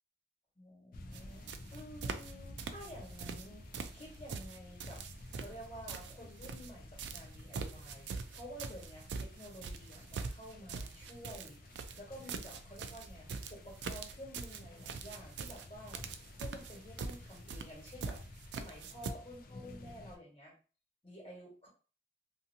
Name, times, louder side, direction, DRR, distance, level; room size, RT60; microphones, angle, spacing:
voice 1, 0.5-3.6 3.9-5.0 5.3-16.0 16.4-20.5 21.0-21.7, equal, 30° left, -4 dB, 1.4 m, -51 dB
sound 1, 0.9-20.2, left 1 dB, 50° left, 0.4 m, -52 dB
sound 2, 1.1-1.2 1.5-2.3 2.6-3.5 3.7-6.7 7.0-19.1, right 5 dB, 65° right, 0.3 m, -43 dB
2.6 x 2.5 x 2.7 m, 0.36 s
head